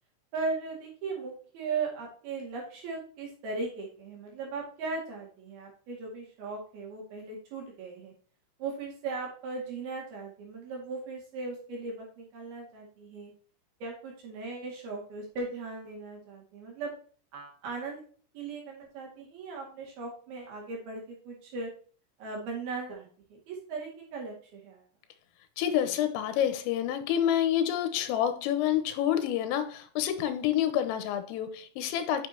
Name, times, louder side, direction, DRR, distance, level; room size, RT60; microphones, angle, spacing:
voice 1, 0.3-8.1 8.6-13.3 13.8-16.9 17.3-18.0 18.3-21.7 22.2-24.8, right 4 dB, 55° right, -1 dB, 3.5 m, -38 dB
voice 2, 25.6-32.3, left 10 dB, 90° left, 9 dB, 3.4 m, -28 dB
9.5 x 6.1 x 2.8 m, 0.43 s
omnidirectional pair, 6.0 m